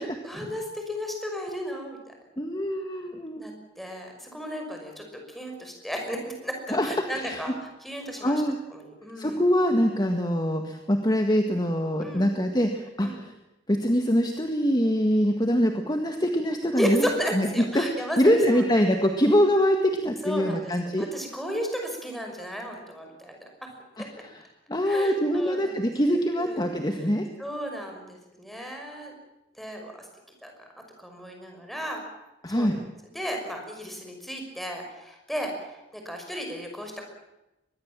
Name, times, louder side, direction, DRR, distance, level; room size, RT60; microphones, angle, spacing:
voice 1, 0.2-2.1 2.9-3.0 3.4-3.5 3.8-8.4 8.7-9.4 12.0-12.3 13.0-13.2 16.7-18.9 20.2-20.7 21.0-23.7 24.0-24.1 24.8-25.9 26.4-26.6 27.4-29.1 29.6-30.1 30.4-30.5 31.0-32.0 32.5-32.8 33.1-37.1, equal, ahead, 3 dB, 5.8 m, -34 dB
voice 2, 2.4-3.4 6.7-7.4 8.2-8.6 9.2-13.3 13.7-17.5 17.8-21.1 24.0-24.1 24.7-27.2 32.4-32.8, equal, 20° left, 4 dB, 1.8 m, -24 dB
23.5 x 21.0 x 7.5 m, 0.95 s
head